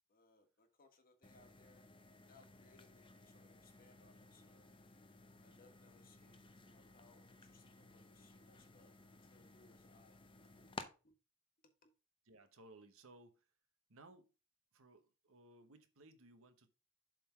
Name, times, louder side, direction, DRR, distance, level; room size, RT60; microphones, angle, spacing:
voice 1, 0.1-1.8 2.2-4.7 5.4-11.1 11.8-11.9, left 3 dB, 40° left, 1.6 m, -69 dB
sound 1, 1.2-10.9, left 3 dB, 25° left, 0.7 m, -57 dB
voice 2, 12.2-13.5 13.9-14.3 14.7-16.7, right 2 dB, 65° right, 1.1 m, -61 dB
7.6 x 3.8 x 5.6 m
head